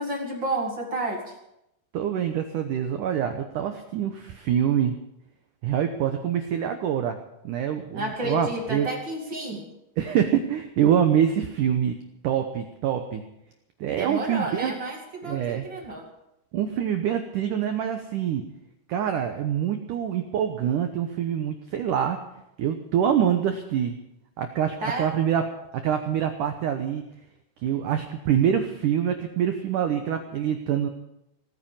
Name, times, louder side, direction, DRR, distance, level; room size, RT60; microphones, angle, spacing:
voice 1, 0.0-1.3 7.9-9.7 14.0-16.1 24.8-25.1, right 1 dB, 35° right, 1 dB, 2.1 m, -31 dB
voice 2, 1.9-4.9 5.6-7.2 7.4-8.9 10.0-11.9 12.2-13.2 13.8-14.7 15.2-15.6 16.5-18.4 18.9-22.2 22.6-23.9 24.4-25.4 25.7-27.0 27.6-30.9, right 9 dB, 90° right, 6 dB, 1.8 m, -25 dB
18.5 x 9.7 x 7.2 m, 0.85 s
omnidirectional pair, 5.2 m